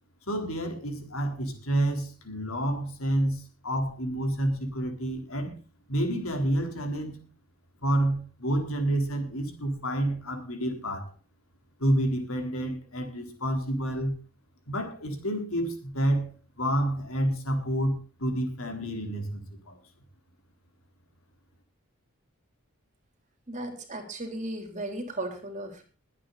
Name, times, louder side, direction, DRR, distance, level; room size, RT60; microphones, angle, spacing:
voice 1, 0.3-5.6 5.9-7.2 7.8-11.1 11.8-14.2 14.7-19.8, right 1 dB, 80° left, 4 dB, 3.9 m, -29 dB
voice 2, 23.5-25.8, right 1 dB, 35° right, 5 dB, 3.5 m, -36 dB
22.0 x 8.8 x 4.1 m, 0.35 s
head